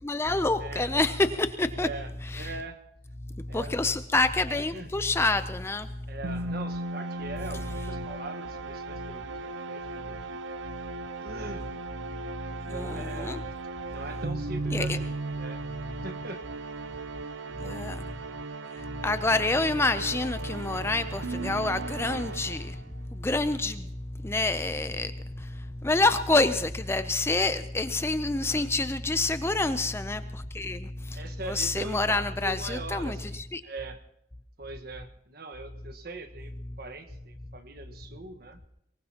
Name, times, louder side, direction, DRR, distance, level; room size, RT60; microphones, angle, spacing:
voice 1, 0.0-1.9 2.3-2.5 3.4-5.9 12.7-13.4 14.7-15.0 17.6-18.0 18.8-22.8 23.1-31.2 31.5-33.6, left 2 dB, 15° left, 11 dB, 0.5 m, -27 dB
voice 2, 0.6-0.9 1.8-2.8 3.5-3.7 4.5-4.9 6.1-10.4 11.2-11.7 12.5-13.4 13.9-16.4 21.2-21.6 23.7-24.0 28.3-28.7 31.1-34.0 34.6-38.6, right 2 dB, 55° right, 8 dB, 1.4 m, -42 dB
sound 1, 6.2-23.0, right 3 dB, 80° right, 0.6 m, -37 dB
23.5 x 19.5 x 2.9 m, 0.77 s
head